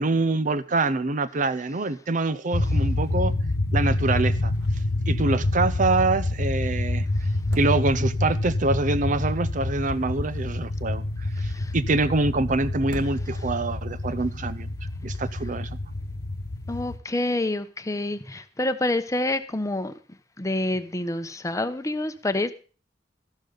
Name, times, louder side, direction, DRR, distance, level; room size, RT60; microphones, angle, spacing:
voice 1, 0.0-3.3 3.7-4.5 5.1-7.0 7.5-14.7 15.0-15.7, right 3 dB, 45° right, 0.6 m, -25 dB
sound 1, 2.5-17.0, left 2 dB, 60° left, 1.0 m, -27 dB
sound 2, 4.5-5.0 5.3-5.4 7.3-8.3 10.0-10.9 12.8-13.7, right 1 dB, 80° right, 1.7 m, -42 dB
voice 2, 11.4-11.7 16.7-19.9 20.4-22.5, left 2 dB, 20° left, 0.8 m, -27 dB
13.5 x 12.0 x 3.9 m
head